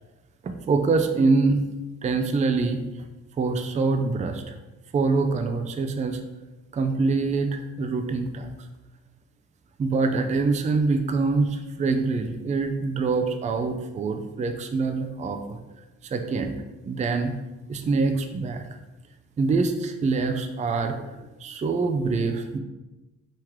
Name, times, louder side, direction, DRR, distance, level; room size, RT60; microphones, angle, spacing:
voice 1, 0.4-1.6 2.0-2.8 3.4-4.5 4.9-6.2 6.7-8.5 9.8-15.6 16.1-17.3 17.7-18.6 19.4-21.1 21.4-22.6, right 4 dB, 25° right, 6 dB, 0.4 m, -25 dB
4.5 x 3.1 x 3.6 m, 1.1 s
cardioid pair, 90°, 30 cm